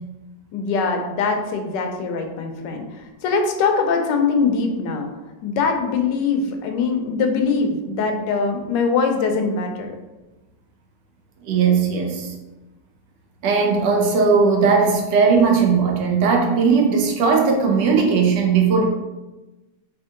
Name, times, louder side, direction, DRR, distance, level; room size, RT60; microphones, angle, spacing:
voice 1, 0.5-5.1 5.4-9.9, left 4 dB, 80° left, 4 dB, 1.2 m, -22 dB
voice 2, 11.5-12.3 13.4-18.8, right 5 dB, 80° right, 1 dB, 1.4 m, -18 dB
3.5 x 2.8 x 3.6 m, 1.1 s
omnidirectional pair, 1.9 m